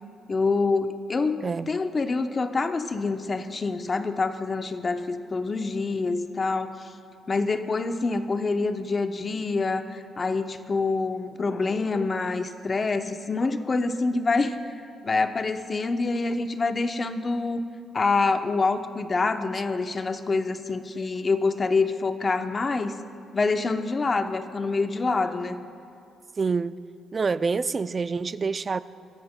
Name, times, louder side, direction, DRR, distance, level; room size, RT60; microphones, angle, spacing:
voice 1, 0.3-6.9 7.3-14.7 15.0-17.6 17.9-23.0 23.3-25.6, left 3 dB, 35° left, 0.7 m, -26 dB
voice 2, 26.4-26.8 27.1-28.8, right 4 dB, 35° right, 0.3 m, -26 dB
22.5 x 13.5 x 2.2 m
cardioid pair, 90°, 0 cm